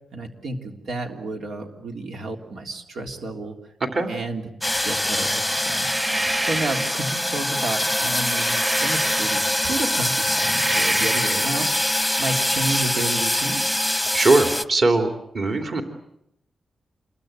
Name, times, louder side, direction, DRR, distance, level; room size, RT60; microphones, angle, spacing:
voice 1, 0.1-3.6 4.1-4.4 4.8-11.7 12.2-13.6, right 2 dB, 90° right, 3 dB, 3.5 m, -31 dB
voice 2, 3.8-4.1 14.1-15.1 15.3-15.8, right 2 dB, 45° right, 5 dB, 3.0 m, -20 dB
sound 1, 4.6-14.6, left 1 dB, ahead, 1.0 m, -24 dB
sound 2, 5.6-7.1 7.9-9.6 10.1-11.5, right 2 dB, 25° right, 1.5 m, -29 dB
28.0 x 22.0 x 8.9 m, 0.79 s
wide cardioid pair, 150°, 0 cm